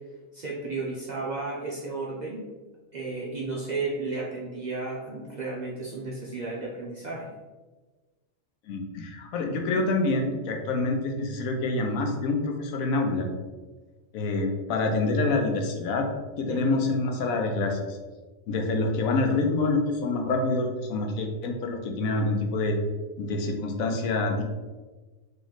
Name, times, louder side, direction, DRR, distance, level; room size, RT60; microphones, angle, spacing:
voice 1, 0.3-2.5 2.9-7.3 16.5-16.8, right 3 dB, 50° right, -5 dB, 0.5 m, -33 dB
voice 2, 8.7-13.3 14.1-16.1 16.4-18.0 18.5-22.8 23.2-24.4, left 2 dB, 85° left, 3 dB, 1.1 m, -26 dB
3.1 x 3.0 x 4.0 m, 1.3 s
omnidirectional pair, 1.4 m